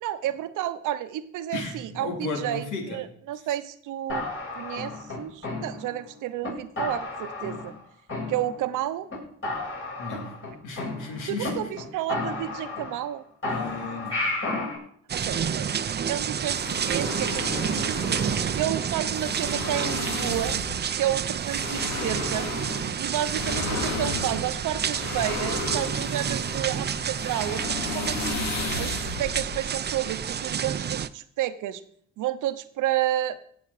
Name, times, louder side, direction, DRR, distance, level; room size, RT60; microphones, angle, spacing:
voice 1, 0.0-4.3 4.5-7.7 8.3-9.1 11.3-13.2 15.1-15.7 16.1-18.0 18.5-20.6 21.0-22.5 23.0-28.5 28.8-31.8 32.2-33.4, right 13 dB, 85° right, 1.0 m, -31 dB
voice 2, 1.5-3.0 10.0-11.7 13.5-14.3 15.2-15.5, left 3 dB, 85° left, 3.0 m, -35 dB
sound 1, 4.1-6.0 6.4-6.5 6.8-7.8 8.1-8.8 9.1-9.2 9.4-11.5 11.8-11.9 12.1-13.1 13.4-14.8, left 2 dB, 45° left, 6.5 m, -32 dB
sound 2, 15.1-31.1, right 8 dB, 35° right, 0.6 m, -29 dB
sound 3, 16.5-30.4, left 3 dB, 65° left, 2.7 m, -34 dB
16.5 x 7.3 x 4.9 m
cardioid pair, 90°, 30 cm